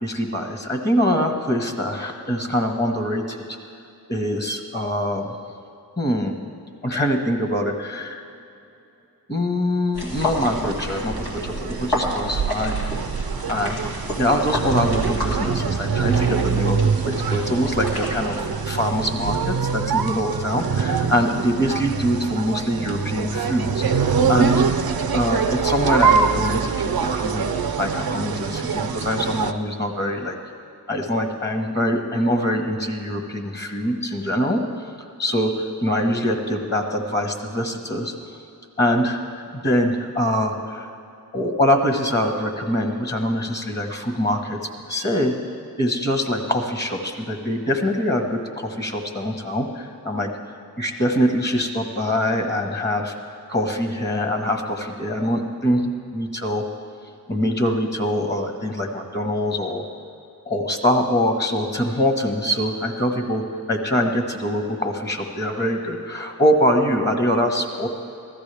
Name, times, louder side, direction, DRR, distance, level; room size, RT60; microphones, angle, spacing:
voice 1, 0.0-3.6 4.1-5.4 6.0-6.4 6.8-8.2 9.3-12.9 13.5-13.8 14.2-24.6 25.1-26.7 27.0-27.5 27.8-30.4 30.9-34.6 35.2-38.1 38.8-41.0 41.3-44.6 44.9-45.3 45.8-50.3 50.8-56.7 57.3-59.8 60.4-67.9, equal, 30° left, 4 dB, 1.5 m, -24 dB
sound 1, 9.9-19.7, equal, 85° left, 2.4 m, -31 dB
sound 2, 10.1-29.5, right 6 dB, 70° right, 0.6 m, -24 dB
15.5 x 13.5 x 3.5 m, 2.7 s
cardioid pair, 50°, 37 cm